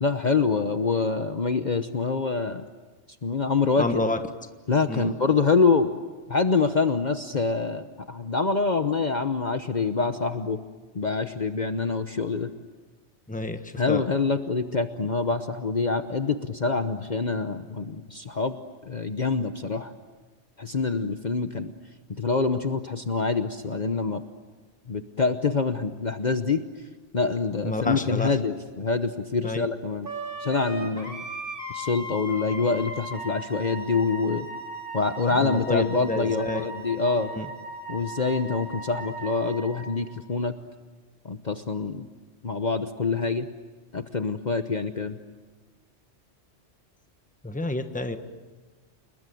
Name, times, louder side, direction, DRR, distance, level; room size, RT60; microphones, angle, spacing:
voice 1, 0.0-2.6 3.2-4.0 4.7-5.9 6.3-10.6 10.9-12.5 13.8-18.6 18.9-19.9 20.6-21.7 22.2-24.2 24.9-26.6 27.1-30.1 30.4-31.2 31.7-34.5 34.9-37.3 37.9-40.6 41.2-42.1 42.4-43.5 43.9-45.2, left 4 dB, 40° left, 8 dB, 1.1 m, -25 dB
voice 2, 3.8-4.2 4.9-5.1 13.3-14.0 27.6-28.3 29.4-29.7 35.4-36.7 37.3-37.4 47.4-48.2, left 2 dB, 5° left, 7 dB, 1.3 m, -29 dB
Wind instrument woodwind instrument, 30.0-39.9, right 1 dB, 50° right, 4.3 m, -37 dB
30.0 x 20.0 x 9.3 m, 1.4 s
omnidirectional pair, 1.2 m